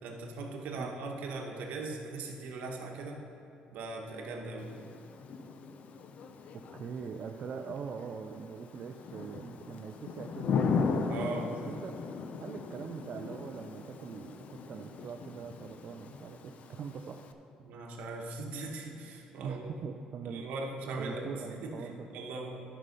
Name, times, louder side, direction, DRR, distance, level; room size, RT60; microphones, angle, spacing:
voice 1, 0.0-3.2 3.7-4.8 11.1-11.5 17.6-19.6 20.2-21.3 21.6-22.6, right 3 dB, 75° right, 1 dB, 1.3 m, -39 dB
Thunder / Rain, 4.6-17.3, left 5 dB, 55° left, 0.6 m, -37 dB
voice 2, 6.8-10.7 11.0-12.0 12.4-17.3 19.4-20.5 21.0-22.1, right 6 dB, 50° right, 4 dB, 0.5 m, -42 dB
11.5 x 5.5 x 5.4 m, 2.9 s
cardioid pair, 105°, 3 cm